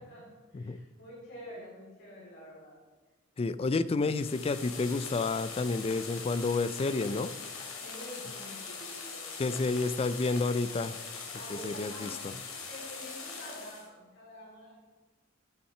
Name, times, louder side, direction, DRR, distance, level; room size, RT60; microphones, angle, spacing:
voice 1, 0.0-2.8 7.8-10.0 11.3-12.2 12.6-14.8, equal, 60° left, -4 dB, 3.6 m, -48 dB
voice 2, 3.4-7.3 9.4-10.9 11.5-12.1, left 3 dB, 30° left, 15 dB, 0.3 m, -30 dB
sound 1, 3.9-13.9, left 5 dB, 80° left, 1.6 m, -42 dB
10.5 x 5.7 x 5.6 m, 1.2 s
head